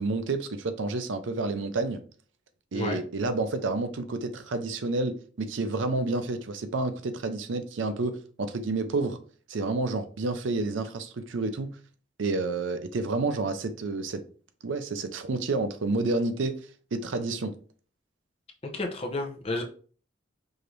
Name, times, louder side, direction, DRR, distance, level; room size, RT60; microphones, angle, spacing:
voice 1, 0.0-2.0 2.7-9.2 9.5-11.8 12.2-14.2 14.6-16.6 16.9-17.5, right 3 dB, 80° right, 0.5 m, -29 dB
voice 2, 18.6-19.6, left 2 dB, 30° left, 0.5 m, -31 dB
4.8 x 2.6 x 3.1 m
head